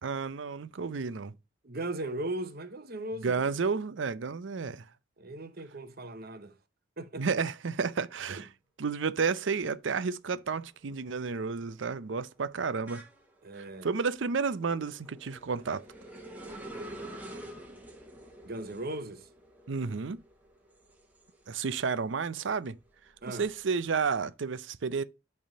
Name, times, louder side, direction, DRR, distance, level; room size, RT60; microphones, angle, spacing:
voice 1, 0.0-1.4 3.2-4.9 7.2-8.5 8.8-13.0 13.5-15.8 19.7-20.2 21.5-22.8 23.3-25.0, right 5 dB, 65° right, 0.6 m, -31 dB
voice 2, 1.6-3.4 5.2-6.5 7.0-7.3 8.4-8.5 13.4-13.9 18.4-19.3 23.2-23.5, right 1 dB, 50° right, 0.9 m, -38 dB
sound 1, 10.2-10.4 10.7-22.0 22.4-24.1, right 1 dB, 10° right, 1.3 m, -48 dB
8.8 x 3.6 x 5.2 m
head